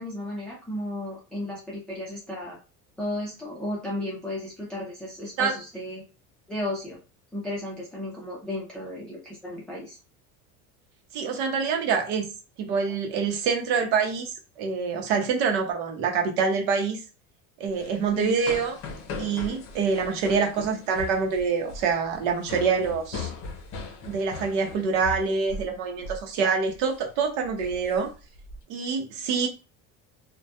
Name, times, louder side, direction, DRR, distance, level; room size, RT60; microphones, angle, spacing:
voice 1, 0.0-2.6 3.0-6.0 6.5-7.0 7.3-10.0 18.1-18.4, left 1 dB, 5° left, 0.4 m, -34 dB
voice 2, 11.1-12.3 12.6-17.0 17.6-18.8 19.2-23.3 24.1-28.1 28.7-29.5, right 5 dB, 80° right, 0.8 m, -26 dB
sound 1, 17.7-25.8 26.0-26.3 26.7-27.0 27.4-28.6, left 4 dB, 40° left, 0.6 m, -39 dB
2.2 x 2.1 x 2.7 m
cardioid pair, 155°, 34 cm